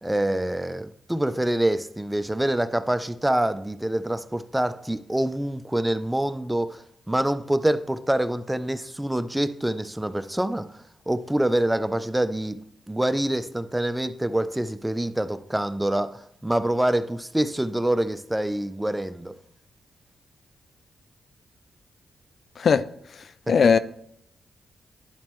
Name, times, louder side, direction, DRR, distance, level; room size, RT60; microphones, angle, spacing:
voice 1, 0.0-10.7 11.1-12.6 12.9-19.3 23.5-23.6, right 1 dB, 10° right, 0.5 m, -26 dB
voice 2, 23.5-23.8, left 6 dB, 65° left, 0.3 m, -18 dB
10.5 x 4.2 x 3.1 m
cardioid pair, 55°, 0 cm